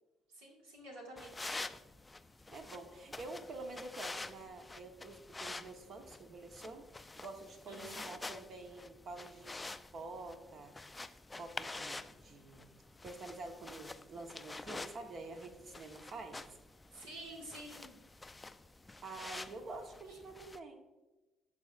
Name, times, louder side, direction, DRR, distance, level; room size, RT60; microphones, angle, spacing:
voice 1, 0.3-1.6 7.7-8.1 16.9-17.9 20.1-20.2, right 1 dB, 90° right, -2 dB, 1.9 m, -50 dB
sound 1, 1.2-20.6, left 2 dB, 20° left, 0.3 m, -48 dB
voice 2, 2.5-9.6 9.9-12.7 13.0-16.4 19.0-20.9, right 2 dB, 55° right, 4 dB, 1.1 m, -48 dB
11.5 x 4.2 x 2.5 m, 1.1 s
supercardioid pair, 65°, 0 cm